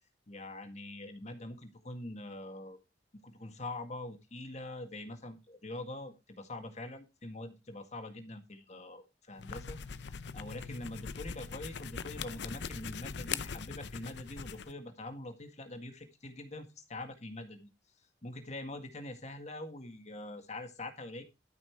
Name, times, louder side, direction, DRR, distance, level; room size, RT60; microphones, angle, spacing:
voice 1, 0.3-2.8 3.2-17.7 18.2-21.2, left 2 dB, 40° left, 7 dB, 1.8 m, -44 dB
sound 1, 9.3-14.7, left 6 dB, 65° left, 0.6 m, -41 dB
12.5 x 5.9 x 4.6 m, 0.26 s
head